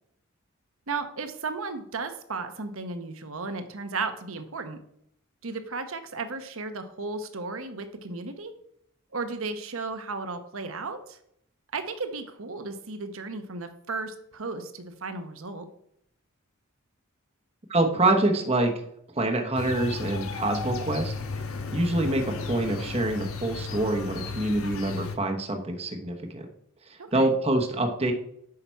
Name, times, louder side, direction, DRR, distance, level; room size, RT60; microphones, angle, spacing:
voice 1, 0.9-4.8 5.4-8.5 9.1-11.2 11.7-15.6 27.0-27.3, right 4 dB, 65° right, 8 dB, 1.0 m, -34 dB
voice 2, 17.7-18.7 19.2-21.1 21.7-26.4 26.9-28.1, right 2 dB, 30° right, 3 dB, 0.9 m, -26 dB
sound 1, 19.6-25.2, left 4 dB, 75° left, 1.1 m, -34 dB
8.6 x 5.8 x 4.5 m, 0.71 s
head